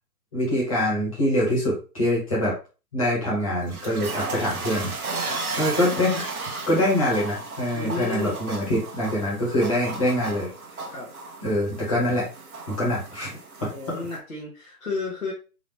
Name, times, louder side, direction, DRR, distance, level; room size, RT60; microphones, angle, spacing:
voice 1, 0.3-2.5 2.9-4.9 5.5-6.2 6.7-10.5 11.4-12.3 12.7-13.4, left 1 dB, 20° left, -6 dB, 1.5 m, -24 dB
sound 1, 3.4-14.2, right 3 dB, 65° right, 1.0 m, -35 dB
voice 2, 7.7-8.3 10.9-11.1 13.7-15.3, left 3 dB, 60° left, -4 dB, 1.4 m, -32 dB
3.9 x 2.9 x 3.1 m, 0.33 s
hypercardioid pair, 170°, 47 cm